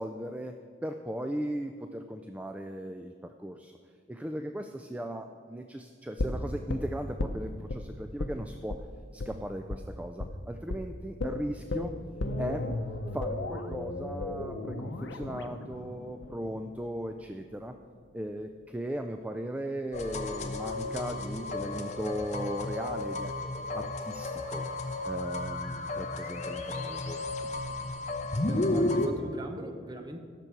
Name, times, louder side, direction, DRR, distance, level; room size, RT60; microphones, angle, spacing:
voice 1, 0.0-3.8 4.1-8.8 9.1-11.9 12.4-12.7 13.1-17.8 18.1-23.3 23.7-24.7 25.0-27.3, equal, 10° right, 6 dB, 0.3 m, -37 dB
sound 1, 6.2-7.8 8.2-8.4 8.7-8.8 9.2-9.3 9.7-9.8 10.2-10.4 10.7-10.8 11.2-17.2 17.5-17.6, left 2 dB, 85° left, 0.8 m, -35 dB
sound 2, 19.9-29.1, left 2 dB, 40° left, 0.9 m, -33 dB
voice 2, 28.5-30.2, right 1 dB, 25° right, 5 dB, 0.9 m, -42 dB
17.0 x 6.8 x 4.6 m, 2.1 s
head